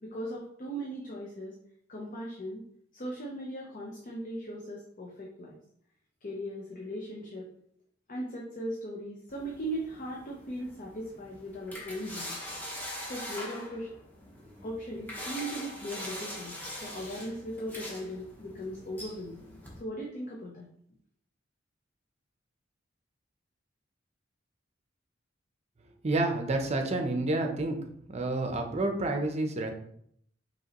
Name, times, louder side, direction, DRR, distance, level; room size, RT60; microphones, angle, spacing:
voice 1, 0.0-1.5 1.9-2.6 2.9-5.6 6.2-7.5 8.1-12.4 13.1-13.9 14.6-16.6 16.8-19.4 19.8-20.7, equal, 45° left, -2 dB, 0.7 m, -38 dB
sound 1, 9.3-19.8, equal, 10° left, 0.9 m, -43 dB
voice 2, 26.0-27.8 28.1-29.7, right 2 dB, 35° right, 4 dB, 0.6 m, -29 dB
5.4 x 3.0 x 2.9 m, 0.69 s
head